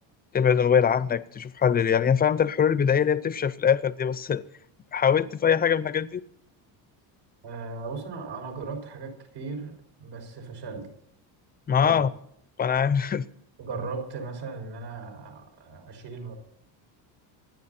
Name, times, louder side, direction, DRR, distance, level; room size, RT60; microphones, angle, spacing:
voice 1, 0.3-4.4 4.9-6.2 11.7-12.1 12.6-13.2, left 7 dB, 20° left, 0.6 m, -23 dB
voice 2, 7.4-9.7 10.0-10.9 11.8-12.1 13.6-16.3, right 4 dB, 75° right, 6.2 m, -37 dB
26.0 x 10.5 x 4.3 m
cardioid pair, 145°, 45 cm